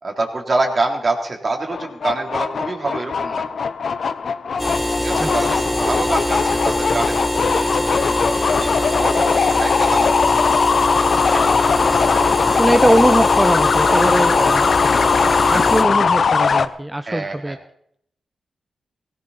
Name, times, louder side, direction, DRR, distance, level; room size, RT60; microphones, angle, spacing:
voice 1, 0.0-3.4 5.0-10.4 11.2-12.6 13.9-15.5 17.1-17.6, right 2 dB, 45° right, 2 dB, 3.7 m, -27 dB
sound 1, 1.7-16.7, left 5 dB, 65° left, 0.9 m, -19 dB
sound 2, 4.6-15.8, left 1 dB, 10° left, 3.9 m, -23 dB
voice 2, 5.2-5.5 12.6-14.7 15.5-17.6, right 1 dB, 10° right, 8 dB, 0.9 m, -20 dB
17.0 x 17.0 x 4.3 m, 0.70 s
supercardioid pair, 45°, 0 cm